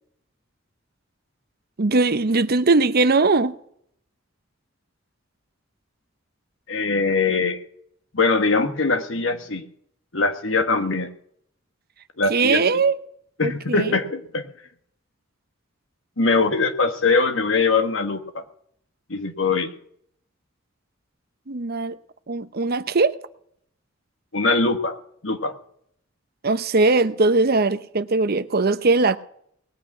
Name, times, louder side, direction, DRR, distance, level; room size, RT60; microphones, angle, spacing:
voice 1, 1.8-3.5 12.3-13.0 13.4-14.0 21.5-22.0 22.3-23.1 26.4-29.2, right 3 dB, 50° right, 0.8 m, -20 dB
voice 2, 6.7-7.6 8.1-9.7 10.1-11.1 12.2-12.8 13.4-14.5 16.2-18.4 19.1-19.7 24.3-25.0 25.2-25.5, left 3 dB, 70° left, 1.7 m, -22 dB
20.0 x 8.8 x 6.1 m
head